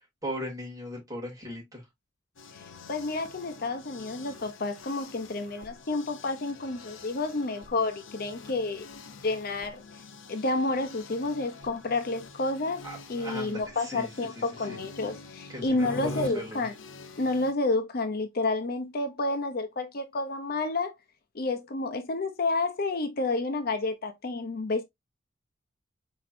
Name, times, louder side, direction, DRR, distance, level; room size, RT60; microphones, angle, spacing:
voice 1, 0.2-1.9 12.8-14.8 15.5-16.7, equal, 20° right, 2.6 m, -38 dB
sound 1, 2.4-17.5, left 2 dB, 85° left, 0.7 m, -45 dB
voice 2, 2.9-8.9 9.2-9.8 10.3-12.8 13.1-16.7 17.2-21.0 21.3-24.8, left 2 dB, 50° left, 0.7 m, -30 dB
4.5 x 4.4 x 2.5 m
head